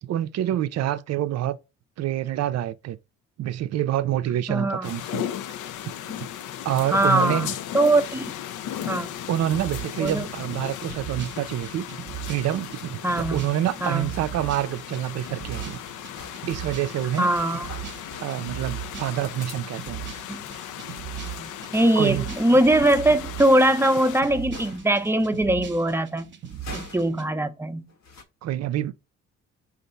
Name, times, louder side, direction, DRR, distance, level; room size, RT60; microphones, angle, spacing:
voice 1, 0.0-1.6 2.0-3.0 3.4-5.2 6.2-6.3 6.6-7.5 9.3-11.9 12.3-15.8 16.5-17.3 18.2-20.0 22.0-22.2 28.4-28.9, right 12 dB, 60° right, 0.5 m, -27 dB
voice 2, 4.5-4.9 6.9-7.5 7.7-8.3 8.8-9.1 10.0-10.3 13.0-13.5 13.8-14.1 17.2-17.7 20.3-20.4 21.3-26.3 26.7-27.9, right 1 dB, 10° right, 0.6 m, -21 dB
sound 1, 4.8-24.2, left 10 dB, 80° left, 0.5 m, -36 dB
sound 2, 9.5-27.2, right 11 dB, 40° right, 0.8 m, -39 dB
sound 3, 15.3-19.4 21.2-25.6 26.5-27.3 27.9-28.2, left 4 dB, 60° left, 1.1 m, -46 dB
5.2 x 2.6 x 3.9 m
cardioid pair, 90°, 30 cm